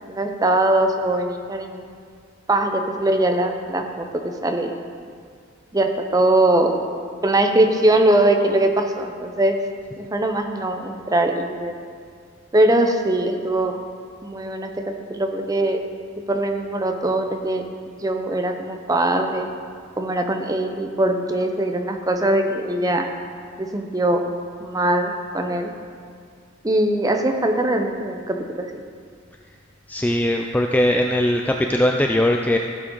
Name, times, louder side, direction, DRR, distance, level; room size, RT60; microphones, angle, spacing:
voice 1, 0.0-1.8 2.5-4.7 5.7-6.8 7.2-9.6 10.0-11.7 12.5-13.8 14.2-15.8 16.3-19.5 20.0-23.1 23.6-24.3 24.6-25.7 26.6-28.7, right 1 dB, 15° right, 5 dB, 0.7 m, -21 dB
voice 2, 29.9-32.6, left 1 dB, 10° left, 2 dB, 0.3 m, -20 dB
15.5 x 7.6 x 3.9 m, 2.2 s
head